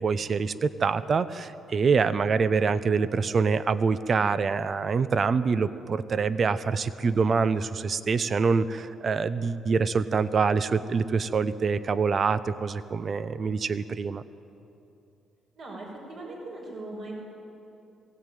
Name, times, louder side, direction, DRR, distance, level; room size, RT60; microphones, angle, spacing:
voice 1, 0.0-14.2, right 5 dB, 45° right, 14 dB, 0.7 m, -25 dB
voice 2, 15.5-17.1, right 2 dB, 70° right, -4 dB, 5.5 m, -39 dB
21.0 x 16.5 x 9.1 m, 2.8 s
cardioid pair, 90°, 0 cm